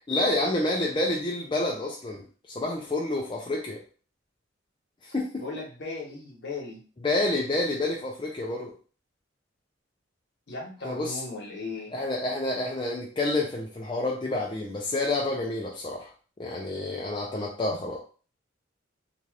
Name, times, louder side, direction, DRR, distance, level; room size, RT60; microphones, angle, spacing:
voice 1, 0.1-3.8 5.1-5.4 7.0-8.7 10.8-11.2 11.9-16.1 16.4-18.0, left 2 dB, 25° left, -3 dB, 0.5 m, -28 dB
voice 2, 5.4-6.8 10.5-11.9 17.7-17.8, left 3 dB, 60° left, -2 dB, 1.1 m, -37 dB
2.8 x 2.4 x 3.2 m, 0.39 s
head